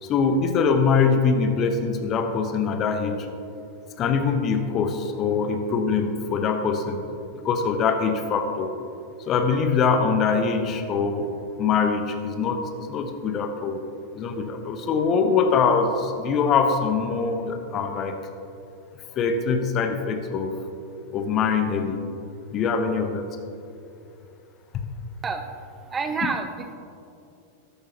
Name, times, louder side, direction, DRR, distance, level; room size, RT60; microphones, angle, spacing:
voice 1, 0.0-3.3 4.0-7.0 7.4-8.7 9.3-11.3 11.6-12.6 12.9-13.8 14.1-18.2 19.2-20.5 21.1-22.0 22.5-23.3, left 5 dB, 30° left, 6 dB, 1.0 m, -23 dB
voice 2, 25.9-26.7, right 4 dB, 20° right, 7 dB, 0.6 m, -28 dB
13.5 x 12.0 x 2.9 m, 2.7 s
figure-of-eight pair, 90°, 0 cm